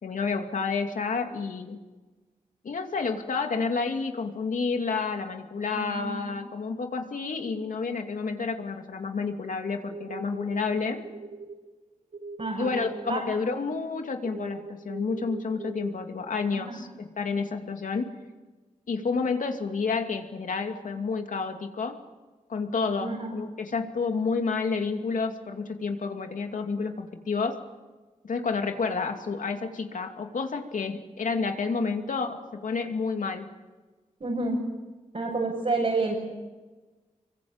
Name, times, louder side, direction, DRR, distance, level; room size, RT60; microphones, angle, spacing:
voice 1, 0.0-1.8 2.6-11.0 12.6-18.1 18.9-22.0 22.5-27.6 28.2-33.5, left 4 dB, 85° left, 5 dB, 2.6 m, -30 dB
voice 2, 5.7-6.4 12.4-12.8 13.1-13.2 13.5-13.6 16.5-16.8 23.0-23.3 34.2-34.6 35.1-36.2, right 3 dB, 55° right, -1 dB, 6.7 m, -29 dB
sound 1, 9.9-10.6 11.0-11.6 12.1-13.1 14.2-15.9, right 3 dB, 85° right, 3.7 m, -40 dB
26.5 x 23.0 x 8.9 m, 1.3 s
cardioid pair, 60°, 13 cm